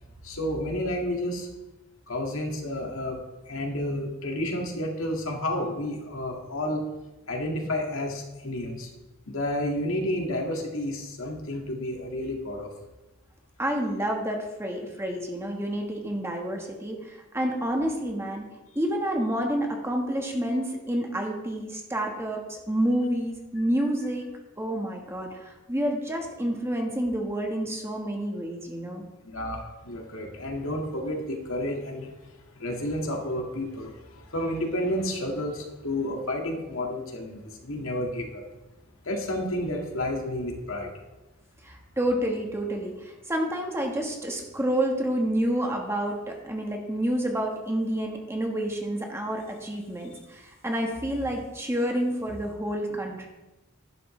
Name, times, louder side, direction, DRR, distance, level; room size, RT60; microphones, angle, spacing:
voice 1, 0.2-1.5 2.1-3.2 3.5-6.8 7.3-8.9 9.3-12.7 29.2-32.1 32.6-38.4 39.1-40.9, left 1 dB, 75° left, 1 dB, 2.0 m, -31 dB
voice 2, 13.6-18.4 18.7-24.3 24.6-29.0 41.6-53.3, right 1 dB, 10° right, 1 dB, 1.3 m, -29 dB
11.5 x 10.5 x 3.2 m, 1.1 s
head